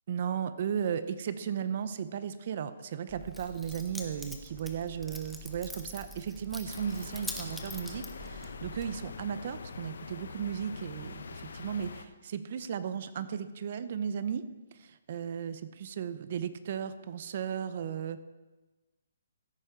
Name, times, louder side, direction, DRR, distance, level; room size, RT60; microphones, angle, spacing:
voice 1, 0.1-18.2, right 8 dB, 45° right, 13 dB, 0.6 m, -35 dB
Keys jangling, 3.1-9.1, equal, ahead, 0.8 m, -45 dB
sound 1, 6.7-12.1, left 4 dB, 70° left, 0.9 m, -44 dB
16.0 x 9.0 x 3.7 m, 1.2 s
hypercardioid pair, 160°, 0 cm